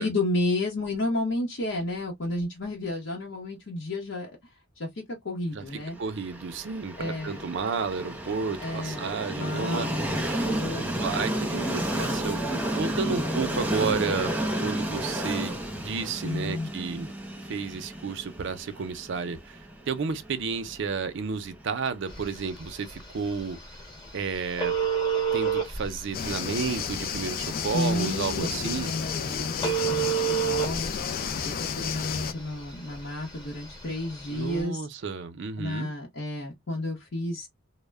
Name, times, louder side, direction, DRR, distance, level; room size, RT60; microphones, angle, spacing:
voice 1, 0.0-4.3 4.8-6.0 7.0-7.4 8.6-10.2 10.4-10.8 13.0-13.7 16.2-16.7 27.7-30.9 31.4-34.8 35.6-37.5, left 1 dB, 60° left, 0.8 m, -31 dB
voice 2, 5.5-9.9 10.8-12.4 12.8-14.3 14.6-17.1 17.5-19.6 19.9-23.6 24.1-24.7 25.3-28.9 34.3-35.9, right 5 dB, 60° right, 0.5 m, -32 dB
Train, 6.2-22.0, right 1 dB, 5° right, 0.6 m, -32 dB
Telephone, 22.1-34.6, right 7 dB, 20° left, 0.9 m, -32 dB
sound 1, 26.1-32.3, left 7 dB, 45° left, 0.3 m, -32 dB
2.1 x 2.0 x 3.3 m
head